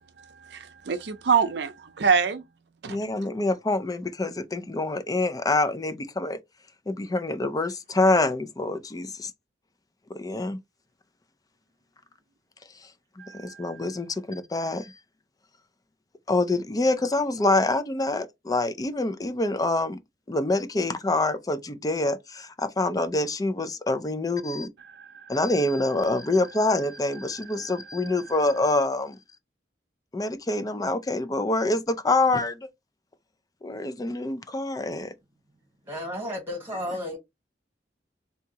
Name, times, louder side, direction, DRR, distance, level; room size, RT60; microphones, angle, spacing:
voice 1, 0.2-2.4 2.8-3.0 13.2-13.8 25.0-25.3 27.6-27.8, right 6 dB, 70° right, 0.5 m, -26 dB
voice 2, 2.9-6.4 6.9-9.3 10.1-10.6 13.3-14.9 16.3-20.0 20.3-24.7 25.3-29.2 30.1-32.7 33.6-35.1, left 2 dB, 20° left, 0.4 m, -26 dB
voice 3, 35.8-37.2, left 1 dB, 15° right, 1.3 m, -32 dB
3.5 x 2.7 x 2.8 m
head